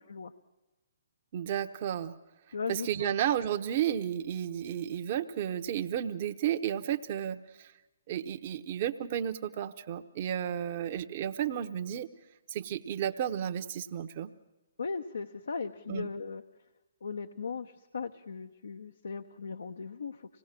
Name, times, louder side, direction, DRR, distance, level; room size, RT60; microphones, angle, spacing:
voice 1, 1.3-2.1 2.7-7.7 8.1-12.1 12.5-14.3 15.9-16.1, right 10 dB, 40° right, 7 dB, 0.9 m, -32 dB
voice 2, 2.5-3.2 14.8-16.4 17.0-20.4, left 5 dB, 75° left, 7 dB, 0.9 m, -38 dB
26.0 x 18.0 x 7.5 m, 1.1 s
hypercardioid pair, 140°, 0 cm